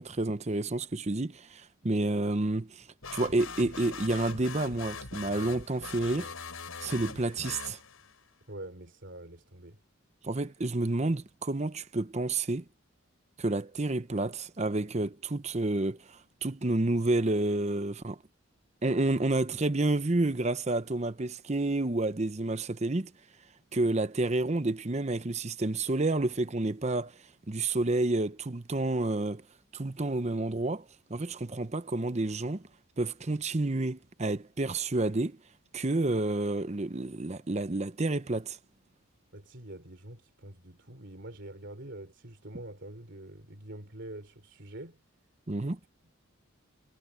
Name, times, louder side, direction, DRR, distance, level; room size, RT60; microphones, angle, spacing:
voice 1, 0.0-2.9 3.1-6.3 6.8-7.8 10.2-12.6 13.4-18.2 18.8-23.1 23.7-27.1 27.5-29.4 29.7-30.8 31.1-32.7 33.0-35.4 35.7-38.6 45.5-45.8, right 2 dB, 30° right, 0.8 m, -29 dB
sound 1, 3.0-8.2, left 5 dB, 90° left, 6.6 m, -42 dB
voice 2, 8.5-9.8 39.3-45.0, right 1 dB, 55° right, 3.3 m, -45 dB
head